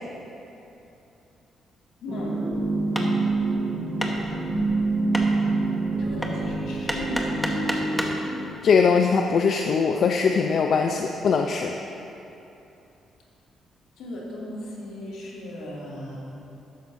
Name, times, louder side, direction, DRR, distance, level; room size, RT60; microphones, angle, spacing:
voice 1, 2.0-2.5 6.0-7.5 14.0-16.2, left 1 dB, 85° left, -5 dB, 2.3 m, -36 dB
sound 1, 2.1-8.5, right 3 dB, 55° right, 1.9 m, -26 dB
Hammer, 2.8-8.2, equal, ahead, 1.1 m, -33 dB
voice 2, 8.6-11.7, left 5 dB, 60° left, 3 dB, 0.5 m, -21 dB
13.0 x 10.0 x 2.7 m, 2.8 s
cardioid pair, 90°, 0 cm